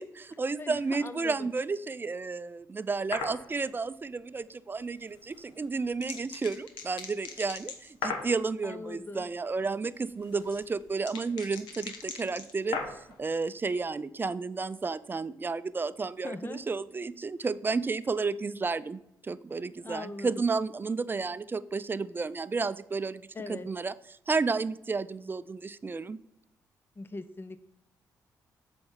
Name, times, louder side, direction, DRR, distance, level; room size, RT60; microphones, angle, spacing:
voice 1, 0.0-23.2 23.5-26.2, right 4 dB, 25° right, 16 dB, 0.4 m, -32 dB
voice 2, 0.6-1.5 8.6-9.3 16.2-16.6 19.8-20.4 23.3-23.7 27.0-27.6, left 3 dB, 30° left, 12 dB, 0.6 m, -40 dB
sound 1, 3.1-3.4 5.3-8.4 9.9-13.2, left 5 dB, 80° left, 1.0 m, -38 dB
7.7 x 4.3 x 5.5 m, 0.82 s
supercardioid pair, 55°, 8 cm